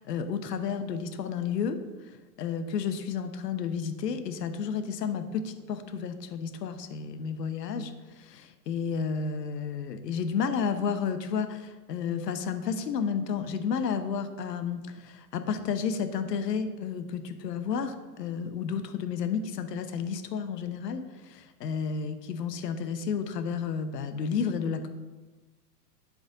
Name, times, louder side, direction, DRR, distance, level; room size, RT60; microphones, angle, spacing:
voice 1, 0.0-1.8 2.1-24.9, left 6 dB, 85° left, 9 dB, 1.0 m, -32 dB
11.5 x 5.0 x 3.9 m, 1.2 s
hypercardioid pair, 145°, 48 cm